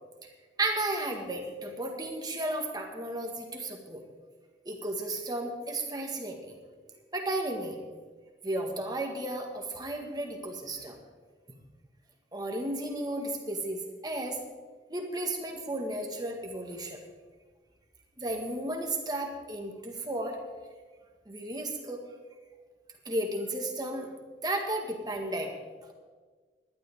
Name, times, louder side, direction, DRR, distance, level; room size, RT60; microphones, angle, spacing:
voice 1, 0.6-4.0 4.7-6.6 7.1-7.8 8.4-11.0 12.3-14.4 14.9-17.0 18.2-20.4 21.3-22.0 23.1-24.1 24.4-25.5, right 1 dB, 25° right, 2 dB, 1.8 m, -33 dB
18.5 x 12.0 x 3.7 m, 1.4 s
head